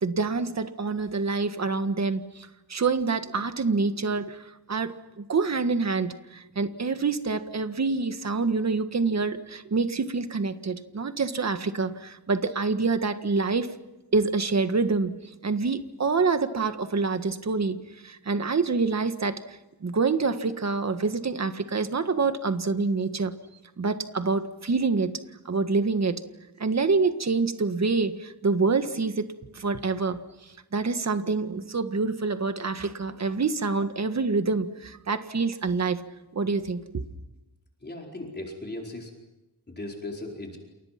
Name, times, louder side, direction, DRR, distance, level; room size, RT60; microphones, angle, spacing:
voice 1, 0.0-13.7 14.1-15.2 15.4-23.4 23.8-25.2 25.5-26.2 26.6-29.3 29.5-30.2 30.7-36.0 36.3-37.0, right 4 dB, 40° right, 9 dB, 1.7 m, -26 dB
voice 2, 37.8-39.1 39.7-40.6, left 2 dB, 25° left, 0 dB, 4.7 m, -37 dB
29.5 x 29.0 x 6.0 m, 1.0 s
wide cardioid pair, 150°, 39 cm